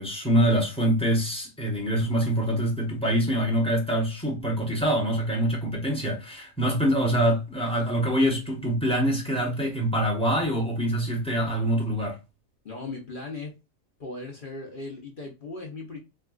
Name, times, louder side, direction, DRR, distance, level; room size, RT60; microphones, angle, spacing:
voice 1, 0.0-12.2, right 1 dB, 5° left, 0.8 m, -25 dB
voice 2, 12.6-13.5 14.0-16.0, left 3 dB, 45° left, 0.8 m, -37 dB
4.4 x 2.3 x 2.3 m
omnidirectional pair, 1.5 m